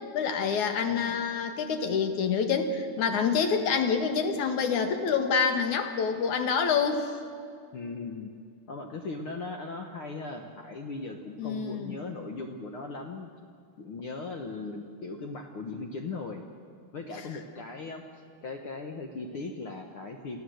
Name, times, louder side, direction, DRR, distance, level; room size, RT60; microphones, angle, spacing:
voice 1, 0.1-7.1 11.4-12.0, left 6 dB, 75° left, 6 dB, 3.0 m, -27 dB
voice 2, 0.9-1.2 3.3-3.4 7.7-8.3 8.7-13.3 13.8-16.4 16.9-20.4, left 3 dB, 55° left, 4 dB, 1.7 m, -38 dB
27.5 x 16.0 x 7.9 m, 2.3 s
omnidirectional pair, 3.5 m